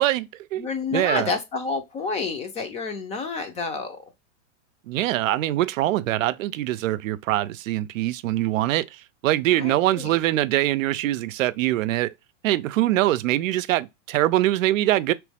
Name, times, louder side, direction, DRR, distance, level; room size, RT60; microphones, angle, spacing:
voice 1, 0.0-1.3 4.9-12.1 12.4-15.1, right 15 dB, 85° right, 0.5 m, -23 dB
voice 2, 0.6-4.0 9.6-10.2, left 4 dB, 15° left, 0.5 m, -29 dB
3.1 x 3.0 x 3.3 m
supercardioid pair, 145°, 38 cm